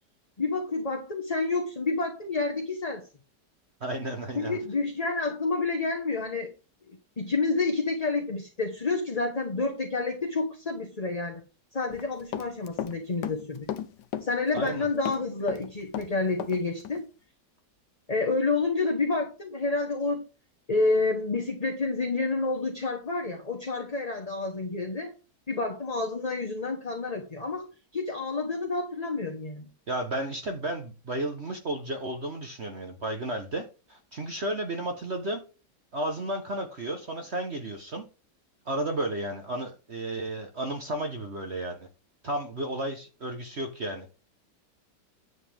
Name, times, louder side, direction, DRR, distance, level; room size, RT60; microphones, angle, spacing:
voice 1, 0.4-3.1 4.3-6.5 7.2-11.4 11.7-13.7 14.2-17.0 18.1-20.3 20.7-25.1 25.5-27.7 27.9-29.7, left 3 dB, 25° left, 1.1 m, -29 dB
voice 2, 3.8-4.6 14.5-14.9 29.9-35.4 35.9-38.0 38.6-41.9 42.2-44.1, right 1 dB, 45° right, 1.2 m, -33 dB
Run, 11.9-13.0 13.2-14.8 15.1-16.6 16.8-17.0, left 10 dB, 75° left, 1.4 m, -35 dB
10.0 x 7.3 x 3.5 m
omnidirectional pair, 1.9 m